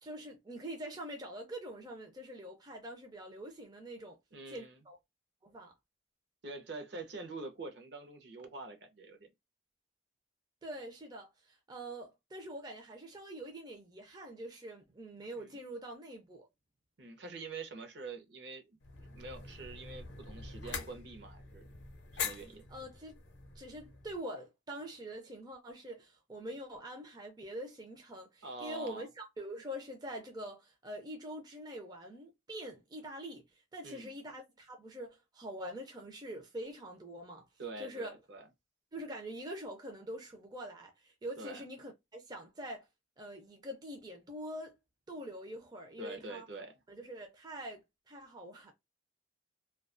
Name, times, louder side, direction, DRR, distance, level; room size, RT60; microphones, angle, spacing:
voice 1, 0.0-4.2 4.5-5.0 5.4-5.7 10.6-16.5 22.7-23.2 23.6-37.5 37.8-38.1 38.9-42.8 43.2-44.7 45.1-46.4 46.9-48.7, right 1 dB, 20° right, 0.4 m, -45 dB
voice 2, 4.3-4.8 6.4-9.3 15.4-15.5 17.0-21.7 22.1-22.7 28.4-29.1 33.8-34.1 37.6-38.4 41.4-41.6 46.0-46.7, right 3 dB, 60° right, 0.6 m, -45 dB
sound 1, 18.8-24.2, left 6 dB, 65° left, 0.6 m, -44 dB
2.3 x 2.2 x 2.4 m
head